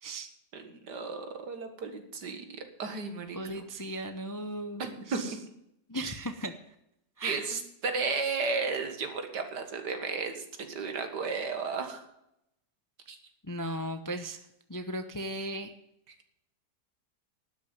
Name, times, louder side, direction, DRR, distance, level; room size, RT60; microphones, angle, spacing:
voice 1, 0.5-3.7 4.8-5.4 7.2-12.1 13.1-13.2, right 4 dB, 85° right, 6 dB, 2.2 m, -34 dB
voice 2, 3.3-5.4 5.9-6.5 7.2-7.5 13.5-14.4 14.7-15.7, right 1 dB, 25° left, 8 dB, 0.4 m, -36 dB
12.0 x 6.6 x 9.2 m, 0.80 s
omnidirectional pair, 1.8 m